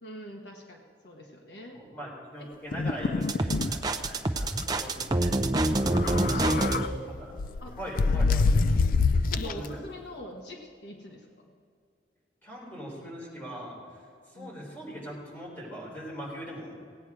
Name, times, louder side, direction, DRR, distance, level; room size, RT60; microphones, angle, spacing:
voice 1, 0.0-1.8 2.4-2.5 5.9-7.0 7.6-7.8 8.1-8.5 9.1-11.3 14.3-14.6, left 1 dB, 65° left, 1 dB, 1.4 m, -42 dB
voice 2, 1.7-5.3 6.0-6.6 7.2-7.3 7.8-8.5 9.4-9.8 12.4-13.8 14.3-16.7, equal, 10° left, -5 dB, 3.6 m, -41 dB
sound 1, 2.7-3.7 4.0-4.1 4.4-4.6 5.8-6.9 7.4-9.7, left 4 dB, 45° left, 0.3 m, -25 dB
sound 2, 3.3-6.8, right 2 dB, 20° right, 0.5 m, -26 dB
17.5 x 9.2 x 4.8 m, 2.3 s
head